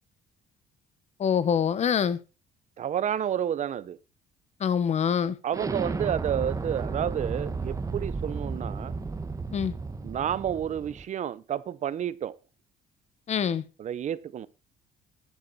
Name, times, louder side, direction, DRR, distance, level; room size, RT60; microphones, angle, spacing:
voice 1, 1.2-2.2 4.6-5.4 9.5-9.7 13.3-13.6, left 7 dB, 40° left, 0.9 m, -25 dB
voice 2, 2.8-4.0 5.4-9.0 10.0-12.4 13.8-14.5, right 9 dB, 45° right, 0.6 m, -30 dB
Explosion, 5.5-11.0, right 4 dB, 20° right, 1.1 m, -33 dB
11.5 x 8.2 x 4.1 m
cardioid pair, 110°, 17 cm